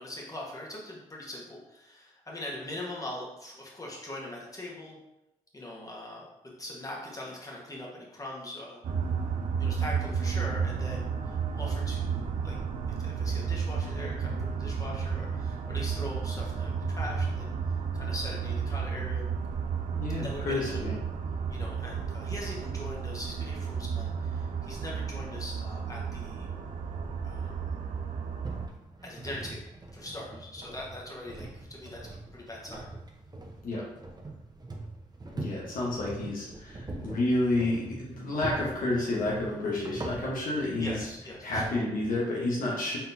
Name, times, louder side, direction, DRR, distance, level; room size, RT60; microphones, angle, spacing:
voice 1, 0.0-5.0 5.5-6.3 6.6-8.8 9.6-12.6 13.0-17.5 17.9-19.3 20.2-20.9 21.5-26.5 27.2-27.8 29.0-29.6 29.9-32.9 40.8-41.7, left 1 dB, 20° left, -3 dB, 1.5 m, -41 dB
sound 1, 8.8-28.7, right 6 dB, 55° right, 0.5 m, -32 dB
voice 2, 19.9-21.0 33.6-33.8 35.3-41.1 41.4-43.0, left 2 dB, 60° left, -4 dB, 1.1 m, -30 dB
sound 2, 28.4-41.7, right 2 dB, 25° right, 0.9 m, -42 dB
4.4 x 3.7 x 2.7 m, 0.91 s
hypercardioid pair, 40°, 16 cm